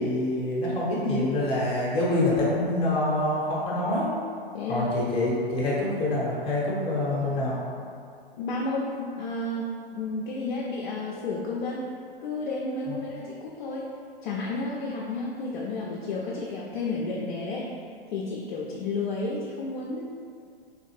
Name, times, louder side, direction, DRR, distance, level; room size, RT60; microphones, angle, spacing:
voice 1, 0.0-4.1 4.7-7.6, left 1 dB, 20° left, -7 dB, 0.7 m, -26 dB
voice 2, 4.5-4.9 8.4-11.9 12.2-13.9 14.2-17.7 18.1-20.0, left 3 dB, 55° left, -4 dB, 0.5 m, -31 dB
3.1 x 2.4 x 3.1 m, 2.3 s
figure-of-eight pair, 115°, 30 cm